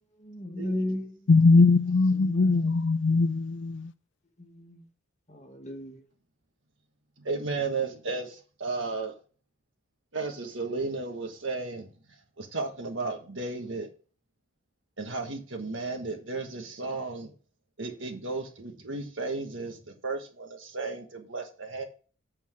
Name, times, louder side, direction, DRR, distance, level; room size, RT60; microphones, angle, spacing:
voice 1, 0.2-1.1 2.1-2.9 4.4-4.8 5.3-6.0, left 1 dB, 35° left, 1.4 m, -36 dB
voice 2, 1.3-3.9, left 3 dB, 65° left, 0.5 m, -21 dB
voice 3, 7.2-9.2 10.1-11.9 12.4-13.9 15.0-17.3 17.8-21.8, right 3 dB, 70° right, 1.4 m, -34 dB
7.5 x 4.4 x 5.8 m
head